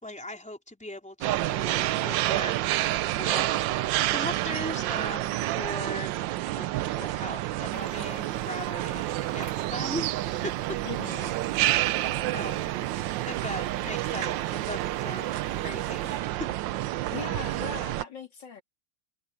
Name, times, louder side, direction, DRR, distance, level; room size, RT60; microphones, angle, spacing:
voice 1, 0.0-3.7 4.0-10.8 11.7-11.8 12.3-12.8 13.3-16.5, left 1 dB, 5° left, 4.0 m, -39 dB
sound 1, 1.2-18.0, right 15 dB, 80° right, 1.3 m, -29 dB
sound 2, 7.7-16.2, right 5 dB, 65° right, 3.4 m, -50 dB
voice 2, 10.8-11.4 17.1-18.6, left 6 dB, 70° left, 3.3 m, -39 dB
omnidirectional pair, 2.0 m